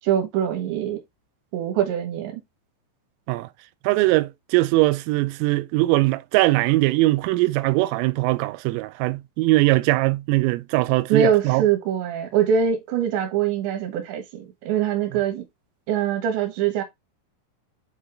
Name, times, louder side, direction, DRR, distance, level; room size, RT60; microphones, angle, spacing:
voice 1, 0.0-1.0 1.5-2.4 11.1-15.5 15.9-16.8, right 8 dB, 70° right, 3.5 m, -23 dB
voice 2, 3.8-11.6 15.1-15.2, right 20 dB, 85° right, 3.2 m, -21 dB
8.5 x 3.8 x 3.5 m
omnidirectional pair, 5.8 m